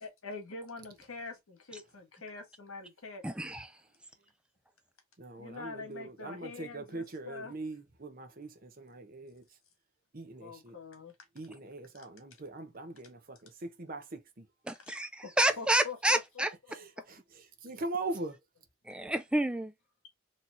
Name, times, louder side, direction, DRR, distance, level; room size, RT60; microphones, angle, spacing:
voice 1, 0.0-3.2 5.4-7.6 10.3-11.1 14.9-15.0 15.2-15.3 15.6-17.0, left 4 dB, 90° left, 1.5 m, -45 dB
voice 2, 3.2-3.7 14.7-16.5 18.9-19.7, right 1 dB, 5° right, 0.3 m, -29 dB
voice 3, 5.2-9.4 10.1-10.8 11.3-14.4 16.7-18.4, right 2 dB, 45° right, 0.9 m, -41 dB
4.3 x 3.1 x 2.7 m
head